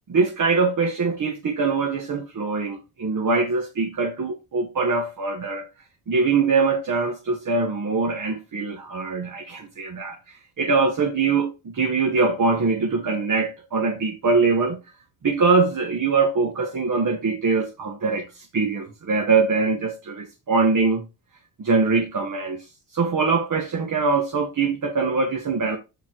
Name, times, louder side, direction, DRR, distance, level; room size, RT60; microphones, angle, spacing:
voice 1, 0.1-5.7 6.1-14.8 15.2-21.0 21.6-25.8, right 4 dB, 40° right, 1.5 m, -23 dB
8.3 x 4.1 x 4.7 m
cardioid pair, 100°, 48 cm